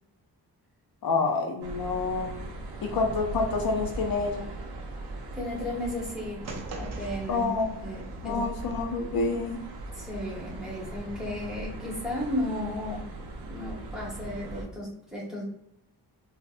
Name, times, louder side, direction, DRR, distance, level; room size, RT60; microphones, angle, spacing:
voice 1, 1.0-2.3 2.8-4.5 7.3-7.7 8.2-9.6, left 4 dB, 65° left, 3 dB, 0.5 m, -28 dB
sound 1, 1.6-14.6, right 2 dB, 85° right, 0.7 m, -39 dB
voice 2, 5.3-7.5 7.8-8.7 9.9-13.1 13.5-15.4, left 1 dB, ahead, -6 dB, 0.9 m, -34 dB
sound 2, 6.4-8.7, right 2 dB, 45° right, 0.4 m, -42 dB
4.0 x 2.0 x 2.4 m, 0.80 s
wide cardioid pair, 165°, 39 cm